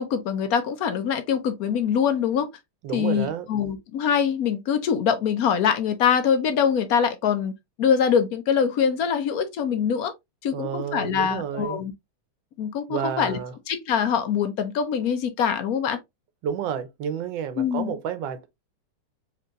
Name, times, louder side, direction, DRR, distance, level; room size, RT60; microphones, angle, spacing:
voice 1, 0.0-2.5 2.9-7.5 7.8-10.1 10.4-11.9 12.6-13.4 13.7-16.0 17.6-17.9, left 7 dB, 65° left, 1.0 m, -24 dB
voice 2, 2.8-3.5 10.5-11.8 12.9-13.5 16.4-18.5, right 8 dB, 85° right, 1.4 m, -30 dB
4.4 x 3.4 x 2.4 m
omnidirectional pair, 2.0 m